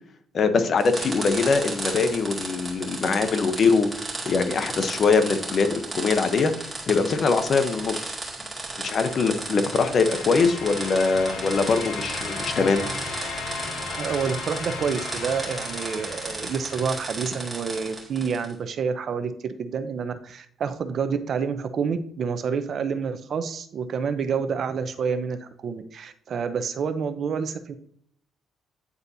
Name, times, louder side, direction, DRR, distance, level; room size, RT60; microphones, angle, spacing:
voice 1, 0.3-3.9 4.2-8.1 8.8-12.8, left 4 dB, 50° left, 9 dB, 0.9 m, -22 dB
sound 1, 0.8-18.5, right 2 dB, 20° right, 2.2 m, -35 dB
sound 2, 8.8-17.7, left 4 dB, 85° left, 1.4 m, -36 dB
voice 2, 14.0-27.7, right 6 dB, 60° right, 10 dB, 0.7 m, -28 dB
9.5 x 4.0 x 2.7 m, 0.64 s
cardioid pair, 90°, 0 cm